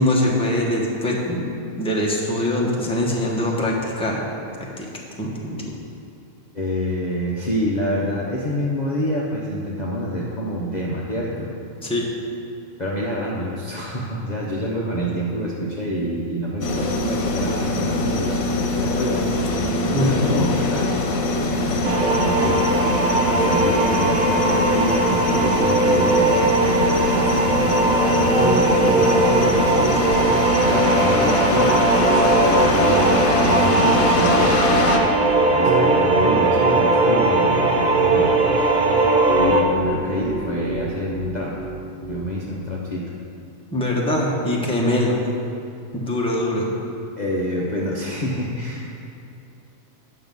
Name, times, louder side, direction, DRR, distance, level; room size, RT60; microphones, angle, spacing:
voice 1, 0.0-1.4 1.8-4.3 4.6-4.9 5.2-5.7 11.8-12.1 19.9-20.3 43.7-45.3 45.9-46.7, left 1 dB, 5° left, -3 dB, 1.0 m, -22 dB
voice 2, 6.5-11.5 12.8-22.6 22.9-30.1 30.6-32.0 32.5-35.1 35.5-38.8 39.4-41.6 42.0-43.1 47.2-48.9, equal, 35° left, -5 dB, 0.9 m, -27 dB
sound 1, 16.6-35.0, left 2 dB, 80° left, 1.3 m, -23 dB
sound 2, 21.8-39.6, right 2 dB, 80° right, 1.3 m, -19 dB
Piano, 28.0-42.2, right 5 dB, 50° right, 0.8 m, -28 dB
9.7 x 6.2 x 5.4 m, 2.6 s
omnidirectional pair, 1.4 m